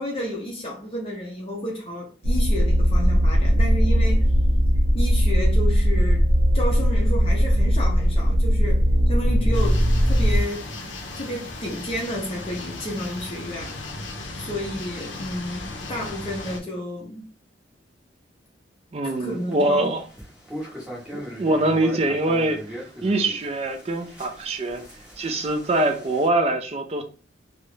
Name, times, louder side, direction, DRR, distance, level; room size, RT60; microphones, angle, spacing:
voice 1, 0.0-4.3 4.9-6.3 6.5-10.6 11.2-13.8 14.3-17.2 19.0-19.9, equal, 30° left, 0.5 m, -31 dB
sound 1, 2.2-10.4, equal, 80° right, 0.7 m, -19 dB
night at the beach, 9.5-16.6, left 2 dB, 90° left, 0.6 m, -36 dB
voice 2, 18.9-20.0 21.1-24.8 25.2-27.0, right 2 dB, 35° right, 0.4 m, -24 dB
sound 2, 19.0-26.3, equal, 5° right, 0.7 m, -39 dB
2.4 x 2.0 x 3.1 m
head